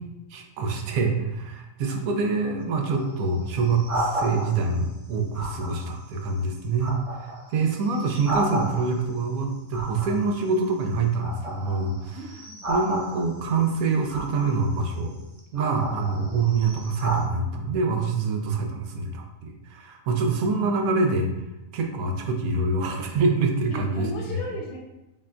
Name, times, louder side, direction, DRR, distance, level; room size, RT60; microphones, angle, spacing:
voice 1, 0.3-12.2 12.7-15.1 15.5-21.3 21.7-24.4, right 4 dB, 80° right, 3 dB, 1.0 m, -25 dB
sound 1, 2.6-4.8 5.3-6.1 6.5-9.2 9.7-10.8 11.1-13.5 14.1-14.8 15.4-17.2, right 1 dB, 55° right, 0.4 m, -33 dB
voice 2, 12.1-12.6 23.7-24.8, left 1 dB, 85° left, -2 dB, 1.1 m, -35 dB
5.4 x 2.1 x 2.5 m, 0.94 s
omnidirectional pair, 1.5 m